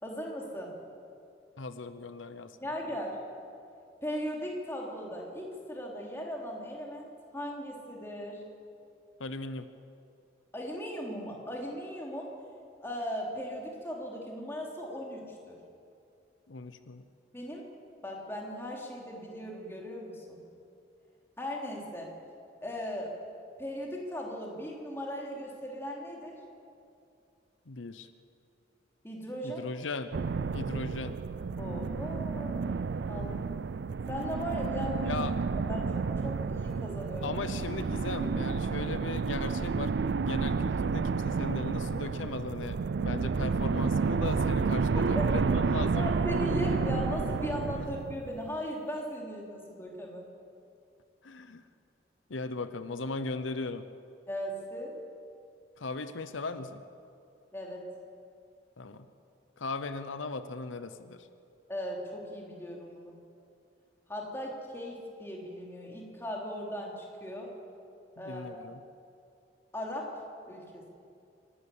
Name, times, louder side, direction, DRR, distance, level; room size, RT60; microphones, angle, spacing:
voice 1, 0.0-0.8 2.6-3.2 4.0-8.4 10.5-12.3 12.8-15.6 17.3-17.6 18.0-20.4 21.4-22.1 22.6-23.1 23.6-26.4 29.0-29.6 31.6-32.7 33.1-33.3 34.1-35.2 35.5-37.4 44.9-45.3 46.0-50.3 54.3-55.0 57.5-57.9 61.7-63.1 64.1-67.5 68.2-68.7 69.7-70.1 70.4-70.9, equal, 15° left, -1 dB, 3.1 m, -38 dB
voice 2, 1.6-2.6 9.2-9.6 16.5-17.0 27.7-28.1 29.4-30.1 30.5-31.1 33.1-33.4 35.0-35.3 37.2-39.9 40.2-46.1 47.8-47.9 51.2-51.6 52.3-53.9 55.8-56.8 58.8-59.1 59.6-61.3 68.2-68.8, left 3 dB, 90° left, 11 dB, 0.8 m, -37 dB
sound 1, 30.1-48.6, right 5 dB, 65° right, 0.4 m, -30 dB
25.5 x 12.5 x 8.5 m, 2.5 s
head